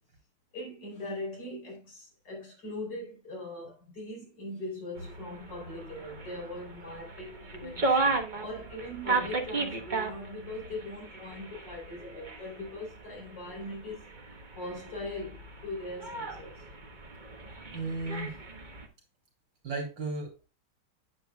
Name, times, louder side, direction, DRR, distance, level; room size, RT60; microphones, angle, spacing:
voice 1, 0.5-7.9 8.4-14.1 14.5-16.7, left 1 dB, 50° left, 4.7 m, -40 dB
sound 1, 5.0-18.9, right 3 dB, 30° right, 0.9 m, -35 dB
voice 2, 17.7-18.3 19.6-20.5, right 3 dB, 55° right, 3.4 m, -35 dB
9.1 x 8.6 x 2.3 m
omnidirectional pair, 2.4 m